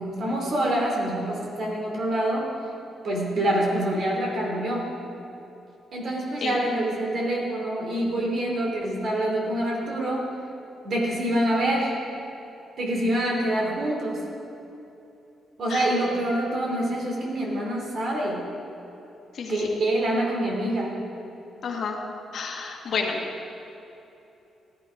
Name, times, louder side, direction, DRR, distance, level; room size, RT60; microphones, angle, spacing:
voice 1, 0.0-2.5 3.0-4.9 5.9-10.3 10.8-11.9 12.8-14.2 15.6-18.4 19.5-21.0, right 1 dB, 45° right, -1 dB, 2.9 m, -26 dB
voice 2, 21.6-22.0 22.3-23.2, left 5 dB, 50° left, 1 dB, 1.6 m, -30 dB
16.0 x 12.0 x 5.1 m, 2.9 s
cardioid pair, 170°, 0 cm